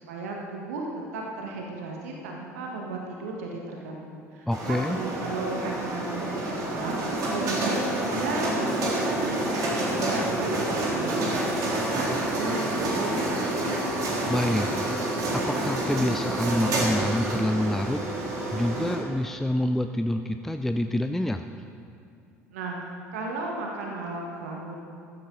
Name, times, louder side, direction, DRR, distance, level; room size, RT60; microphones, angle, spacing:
voice 1, 0.1-7.0 7.3-9.4 9.6-11.1 11.4-13.1 13.5-13.8 22.5-22.8 23.1-24.7, right 3 dB, 70° right, -1 dB, 1.6 m, -34 dB
voice 2, 4.5-5.0 14.3-14.7 15.3-18.0 18.5-21.4, left 1 dB, 5° left, 7 dB, 0.5 m, -27 dB
sound 1, 4.5-19.0, right 1 dB, 45° right, 3.6 m, -28 dB
15.0 x 12.5 x 3.9 m, 2.5 s
figure-of-eight pair, 65°, 8 cm